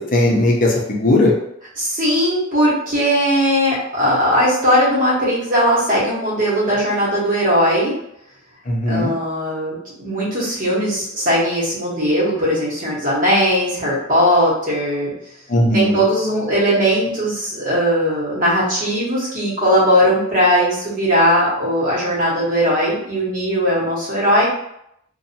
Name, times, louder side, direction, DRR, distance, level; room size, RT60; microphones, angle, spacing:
voice 1, 0.1-1.3 8.7-9.1 15.5-16.0, left 1 dB, 40° left, -2 dB, 0.6 m, -17 dB
voice 2, 1.8-7.9 8.9-15.1 15.7-24.5, equal, 40° right, -7 dB, 1.1 m, -18 dB
2.7 x 2.2 x 2.7 m, 0.76 s
head